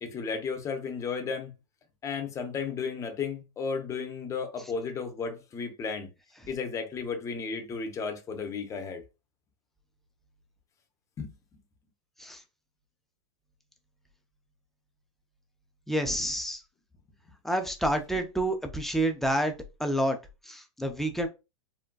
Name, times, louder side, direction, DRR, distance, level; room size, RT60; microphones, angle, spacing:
voice 1, 0.0-1.5 2.0-6.1 6.5-9.0 11.2-11.3, left 5 dB, 20° left, 0.8 m, -34 dB
voice 2, 15.9-16.6 17.4-19.5 19.8-20.2 20.5-21.3, right 1 dB, ahead, 0.4 m, -28 dB
3.8 x 2.2 x 2.3 m
hypercardioid pair, 125°, 16 cm